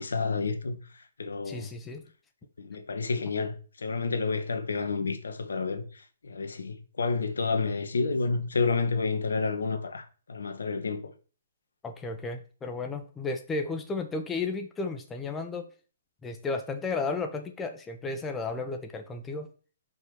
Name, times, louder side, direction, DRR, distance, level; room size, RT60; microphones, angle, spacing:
voice 1, 0.0-1.7 2.6-11.1, left 4 dB, 70° left, 1.3 m, -30 dB
voice 2, 1.4-2.0 11.8-15.7 16.2-19.5, left 3 dB, 10° left, 0.9 m, -33 dB
5.4 x 4.7 x 6.1 m
figure-of-eight pair, 125°, 0 cm